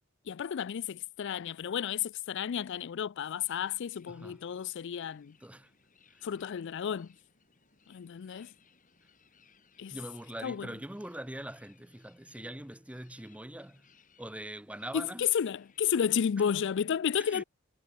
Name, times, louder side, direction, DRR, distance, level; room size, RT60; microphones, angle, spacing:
voice 1, 0.3-5.4 6.2-7.1 7.9-8.5 9.8-10.0 10.4-10.7 14.9-17.4, left 8 dB, 55° left, 0.4 m, -32 dB
sound 1, 3.2-16.2, left 5 dB, 35° left, 4.1 m, -66 dB
voice 2, 4.1-4.4 5.4-5.7 6.1-6.2 8.3-8.5 9.9-13.9 14.2-15.3 16.4-16.5 17.2-17.4, right 1 dB, 5° right, 0.9 m, -43 dB
head